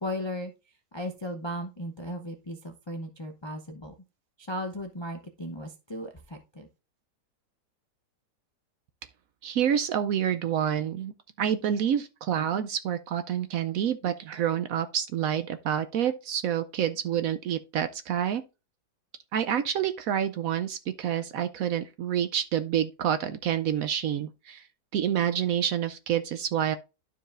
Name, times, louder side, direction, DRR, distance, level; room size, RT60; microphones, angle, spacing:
voice 1, 0.0-0.5 0.9-3.9 4.4-6.7, equal, 35° left, 0.4 m, -36 dB
voice 2, 9.4-11.1 11.4-18.4 19.3-24.7 24.9-26.8, right 9 dB, 70° right, 0.9 m, -28 dB
12.0 x 4.8 x 2.5 m
omnidirectional pair, 1.8 m